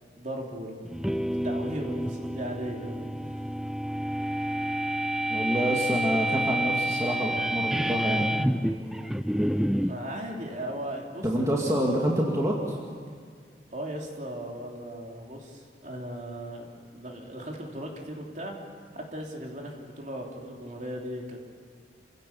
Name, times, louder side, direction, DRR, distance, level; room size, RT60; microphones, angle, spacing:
voice 1, 0.1-0.9 1.4-3.4 8.0-8.5 9.8-11.5 13.7-18.5 18.9-21.5, equal, 45° right, 0 dB, 3.2 m, -37 dB
sound 1, 0.9-10.0, right 1 dB, 5° right, 0.5 m, -29 dB
voice 2, 5.3-8.3 11.2-12.8, equal, 20° right, -2 dB, 2.2 m, -27 dB
28.0 x 16.5 x 7.0 m, 2.1 s
head